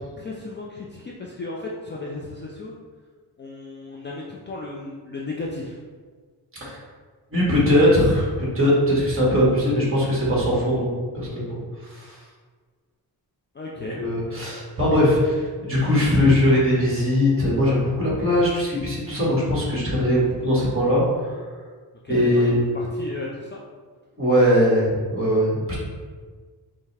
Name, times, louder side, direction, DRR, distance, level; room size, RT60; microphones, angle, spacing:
voice 1, 0.2-2.8 3.4-5.8 13.5-14.0 22.0-23.6, left 2 dB, 30° left, -3 dB, 0.4 m, -35 dB
voice 2, 7.3-11.6 11.9-12.2 14.0-21.3 22.1-22.6 24.2-25.7, left 1 dB, 30° right, -6 dB, 1.5 m, -20 dB
5.6 x 2.1 x 3.3 m, 1.5 s
wide cardioid pair, 145°, 40 cm